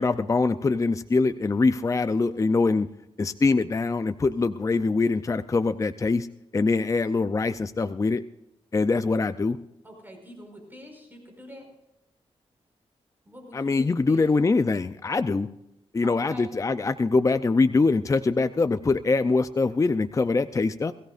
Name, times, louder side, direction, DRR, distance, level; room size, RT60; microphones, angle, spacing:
voice 1, 0.0-2.9 3.2-6.3 6.5-8.2 8.7-9.6 13.5-15.5 15.9-20.9, left 3 dB, 30° left, 11 dB, 0.5 m, -23 dB
voice 2, 9.8-11.7 13.2-14.3 16.0-16.5, equal, 15° right, 2 dB, 5.0 m, -45 dB
22.0 x 15.5 x 2.5 m, 0.86 s
wide cardioid pair, 105°, 11 cm